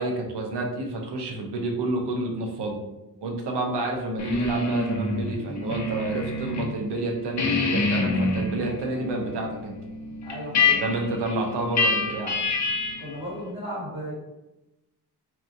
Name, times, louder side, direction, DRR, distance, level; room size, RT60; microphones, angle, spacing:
voice 1, 0.0-2.8 3.2-9.8 10.7-12.4, right 2 dB, 85° right, 1 dB, 0.6 m, -29 dB
sound 1, 4.2-6.7 7.0-13.1, left 3 dB, 45° left, 0.5 m, -27 dB
voice 2, 10.2-10.8 13.0-14.1, equal, 30° right, -9 dB, 1.4 m, -35 dB
2.8 x 2.4 x 2.5 m, 0.98 s
wide cardioid pair, 165°, 40 cm